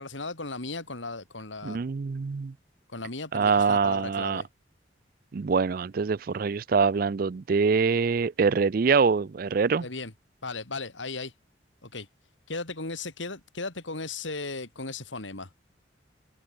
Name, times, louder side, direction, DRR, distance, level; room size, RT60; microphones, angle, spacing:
voice 1, 0.0-1.8 2.9-4.5 9.8-10.1 10.4-11.3 11.8-12.1 12.5-15.5, left 3 dB, 85° left, 3.4 m, -36 dB
voice 2, 1.6-2.5 3.3-4.4 5.3-9.9, right 5 dB, 50° right, 0.4 m, -24 dB
head